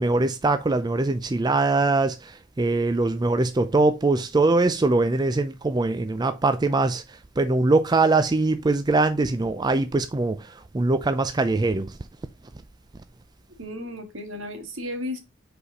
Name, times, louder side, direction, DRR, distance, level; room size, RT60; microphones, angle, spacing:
voice 1, 0.0-12.0, right 3 dB, 20° right, 0.4 m, -22 dB
voice 2, 13.6-15.2, left 1 dB, 70° right, 1.7 m, -34 dB
5.5 x 4.1 x 4.9 m
head